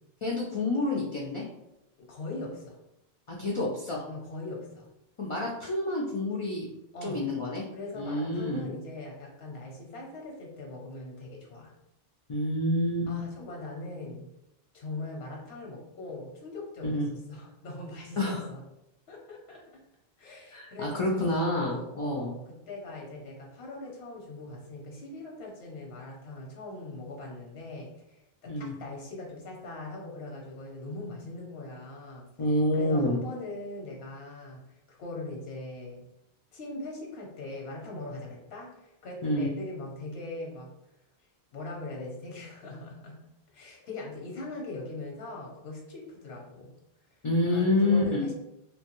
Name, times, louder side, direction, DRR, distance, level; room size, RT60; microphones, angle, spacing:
voice 1, 0.2-1.4 3.3-4.0 5.2-6.6 7.0-7.6 8.0-8.6 12.3-13.1 16.8-17.1 18.2-18.4 20.5-22.3 28.5-28.7 32.4-33.2 39.2-39.5 47.2-48.2, left 1 dB, 55° left, -3 dB, 0.3 m, -28 dB
voice 2, 2.0-2.8 4.1-4.9 6.9-7.3 7.7-11.7 13.1-14.3 14.7-17.0 17.3-18.6 19.1-19.6 20.2-27.9 28.4-32.3 32.7-34.6 34.9-36.0 36.5-40.7 41.5-43.3 43.5-46.7 47.5-48.3, left 2 dB, 90° left, -1 dB, 0.9 m, -41 dB
2.9 x 2.2 x 2.9 m, 0.88 s
omnidirectional pair, 1.0 m